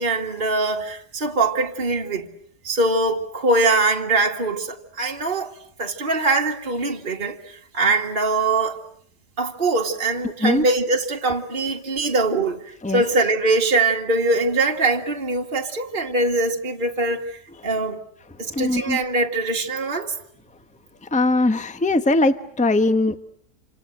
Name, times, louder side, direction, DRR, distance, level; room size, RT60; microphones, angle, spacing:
voice 1, 0.0-2.3 2.6-5.5 5.8-8.8 9.4-18.0 18.4-20.1, right 2 dB, 30° right, 2.1 m, -22 dB
voice 2, 18.5-19.0 21.1-23.2, left 2 dB, 5° left, 0.9 m, -20 dB
28.0 x 26.5 x 7.9 m
omnidirectional pair, 1.8 m